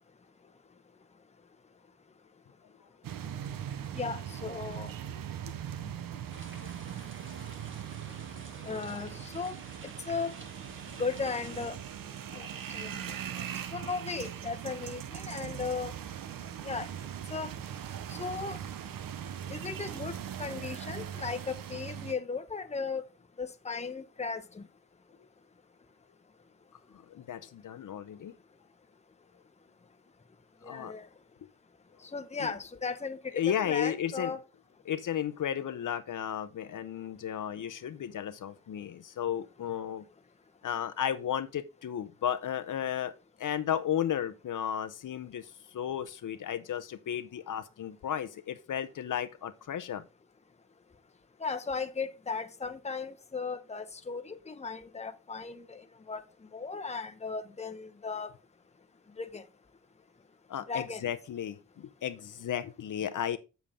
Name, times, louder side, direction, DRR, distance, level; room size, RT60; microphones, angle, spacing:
sound 1, 3.0-22.1, right 9 dB, 85° right, 0.7 m, -40 dB
voice 1, 3.9-4.9 5.8-5.9 8.6-9.5 10.1-10.4 11.0-11.8 12.4-12.5 12.7-12.9 13.7-15.9 16.6-16.9 17.3-17.5 18.1-18.6 19.5-23.0 23.4-24.6 30.6-31.1 32.1-33.3 33.6-34.4 51.4-55.8 56.1-56.2 56.5-58.3 59.2-59.4 60.7-61.0, left 4 dB, 20° left, 0.8 m, -36 dB
sound 2, 6.3-11.7, right 3 dB, 35° right, 1.5 m, -51 dB
voice 2, 27.1-28.4 30.6-30.9 32.4-32.5 33.3-34.4 34.8-40.0 40.6-43.1 43.4-50.0 60.5-63.4, left 9 dB, 70° left, 0.7 m, -34 dB
7.1 x 7.0 x 3.6 m
cardioid pair, 85°, 33 cm